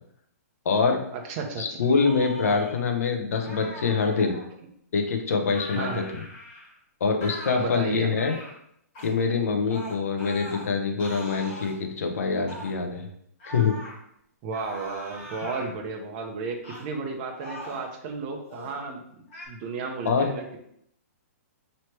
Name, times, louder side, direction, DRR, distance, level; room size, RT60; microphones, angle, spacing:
voice 1, 0.6-1.0 1.6-4.4 4.9-6.0 7.0-8.3 9.0-13.1 13.5-13.8 20.0-20.3, left 5 dB, 65° left, 4 dB, 0.7 m, -25 dB
voice 2, 1.3-1.6 5.7-6.1 7.6-8.1 14.4-19.0 19.5-20.6, right 4 dB, 25° right, 2 dB, 0.6 m, -33 dB
sound 1, 1.8-2.7 3.4-4.5 5.5-6.7 7.2-7.6 8.1-8.5 8.9-9.1 9.7-10.7 11.0-11.7 12.5-12.7 13.4-14.0 14.5-15.7 16.6-16.9 17.3-17.9 18.4-18.7 19.3-19.5, equal, 30° left, 1.2 m, -41 dB
3.1 x 2.9 x 4.5 m, 0.71 s
hypercardioid pair, 165°, 9 cm